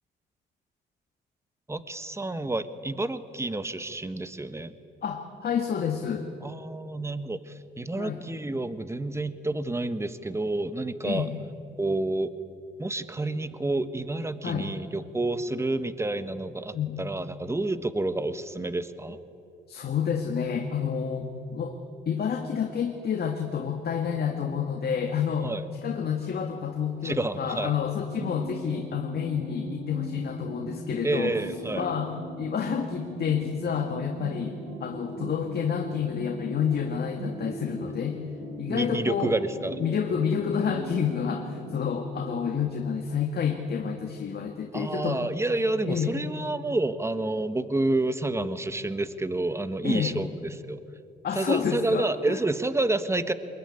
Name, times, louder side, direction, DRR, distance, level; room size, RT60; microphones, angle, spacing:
voice 1, 1.7-4.7 6.4-11.3 11.8-12.3 12.8-19.2 25.4-25.7 27.0-27.7 31.0-31.9 38.6-39.8 44.7-50.8 51.3-53.3, right 2 dB, 15° right, 12 dB, 1.4 m, -29 dB
voice 2, 5.0-6.3 8.0-8.2 11.0-11.4 14.4-14.7 16.7-17.0 19.7-21.7 22.1-25.5 25.8-31.3 31.8-34.6 34.8-38.2 38.6-39.3 39.8-45.2 45.9-46.1 49.8-50.2 51.2-52.4, left 7 dB, 50° left, 4 dB, 1.9 m, -29 dB
sound 1, 28.1-42.8, right 2 dB, 70° right, 4.7 m, -39 dB
23.0 x 21.5 x 9.8 m, 2.7 s
cardioid pair, 90°, 20 cm